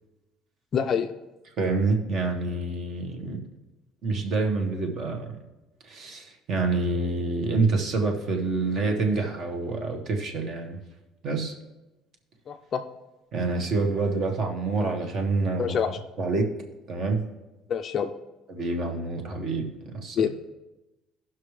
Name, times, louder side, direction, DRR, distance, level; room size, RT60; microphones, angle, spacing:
voice 1, 0.7-1.1 12.5-12.8 15.6-15.9 17.7-18.1 20.2-20.3, left 7 dB, 30° left, 7 dB, 0.5 m, -26 dB
voice 2, 1.6-3.4 4.0-5.3 5.8-10.8 11.2-11.6 13.3-15.8 16.2-16.5 16.9-17.2 18.5-20.3, right 3 dB, 35° right, 3 dB, 1.4 m, -27 dB
17.5 x 6.0 x 3.2 m, 1.0 s
cardioid pair, 180°, 0 cm